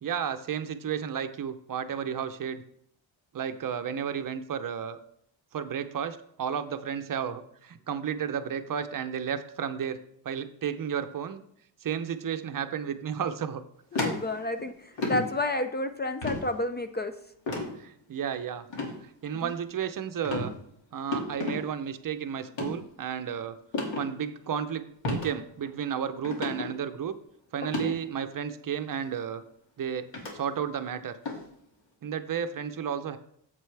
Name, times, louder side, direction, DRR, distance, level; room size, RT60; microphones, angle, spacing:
voice 1, 0.0-2.6 3.3-5.0 5.5-10.0 10.2-11.4 11.8-13.6 17.8-18.7 19.2-20.5 20.9-23.6 24.0-27.2 27.5-29.4 29.8-30.1 30.3-31.2 32.0-33.2, right 8 dB, 45° right, 10 dB, 0.6 m, -32 dB
sound 1, 13.9-14.6 15.0-15.2 16.2-16.4 17.5-17.7 18.7-18.9 19.4-19.8 20.2-20.5 21.1-21.6 22.5-22.7 23.7-24.0 25.0-25.3 25.7-25.8 26.2-26.7 27.6-27.9 28.9-29.0 30.1-30.3 31.3-31.4, left 3 dB, 65° left, 2.3 m, -31 dB
voice 2, 13.9-17.1 19.3-19.5 27.8-27.9, left 2 dB, 25° left, 9 dB, 0.4 m, -31 dB
7.9 x 7.4 x 3.3 m, 0.69 s
cardioid pair, 100°, 46 cm